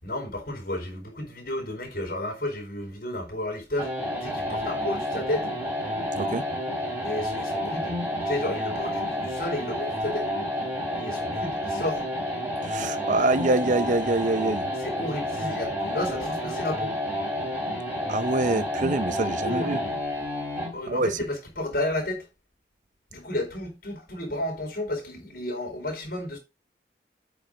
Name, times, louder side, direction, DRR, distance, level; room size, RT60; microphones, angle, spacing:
voice 1, 0.0-5.5 7.0-10.3 11.0-12.1 14.8-17.0 19.4-19.9 20.7-22.3 23.1-26.4, left 1 dB, 55° left, 4.4 m, -32 dB
sound 1, 3.8-20.8, left 1 dB, 10° right, 3.4 m, -30 dB
voice 2, 12.7-14.7 18.1-19.8 20.9-21.1, right 2 dB, 45° right, 0.6 m, -25 dB
8.6 x 5.7 x 5.1 m
head